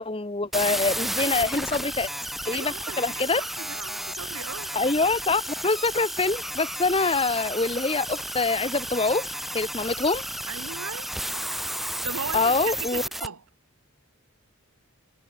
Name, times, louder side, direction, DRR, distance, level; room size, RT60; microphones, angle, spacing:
voice 1, 0.0-2.1 2.5-3.4 4.7-9.3 9.5-10.2 12.3-13.0, left 3 dB, 25° left, 0.9 m, -25 dB
sound 1, 0.5-13.3, equal, ahead, 1.6 m, -32 dB
voice 2, 1.2-1.5 2.5-4.7 10.5-11.1 11.8-13.4, right 6 dB, 85° right, 1.1 m, -38 dB
head